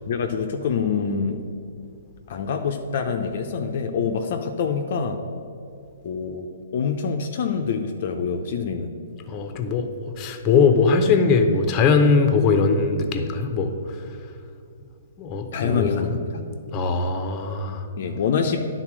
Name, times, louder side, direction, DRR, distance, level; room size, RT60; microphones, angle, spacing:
voice 1, 0.1-1.4 2.3-5.2 6.0-9.0 15.5-16.3 18.0-18.6, left 6 dB, 60° left, 4 dB, 0.6 m, -26 dB
voice 2, 9.3-9.9 10.2-13.7 15.2-17.9, left 4 dB, 30° left, 7 dB, 0.8 m, -21 dB
9.9 x 4.0 x 6.1 m, 2.5 s
hypercardioid pair, 135°, 0 cm